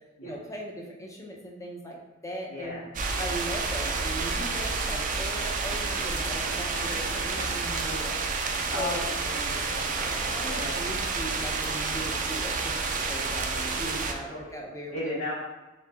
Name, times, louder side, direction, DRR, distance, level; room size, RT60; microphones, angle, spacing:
voice 1, 0.2-2.8 3.2-9.0 10.2-15.2, equal, 15° left, -1 dB, 0.7 m, -39 dB
voice 2, 2.5-2.8 3.1-3.5 7.1-7.4 8.7-10.8 14.3-15.3, left 1 dB, 75° left, -10 dB, 1.0 m, -37 dB
sound 1, 2.9-14.1, right 4 dB, 40° right, 0.4 m, -29 dB
3.9 x 3.1 x 3.3 m, 1.1 s
head